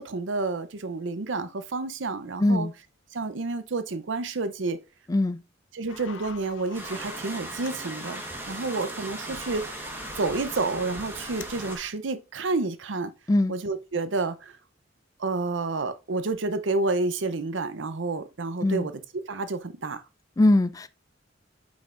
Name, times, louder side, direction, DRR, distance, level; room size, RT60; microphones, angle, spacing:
voice 1, 0.0-2.7 3.1-4.8 5.7-9.9 10.2-13.1 13.5-14.6 15.2-20.0, right 3 dB, 75° right, 0.7 m, -30 dB
voice 2, 2.4-2.7 5.1-5.4 13.3-13.6 18.6-18.9 20.4-20.9, left 1 dB, 20° left, 0.3 m, -21 dB
sound 1, 5.9-11.9, left 5 dB, 85° left, 0.7 m, -45 dB
sound 2, 6.7-11.8, right 2 dB, 10° right, 1.3 m, -38 dB
8.0 x 5.3 x 2.5 m
head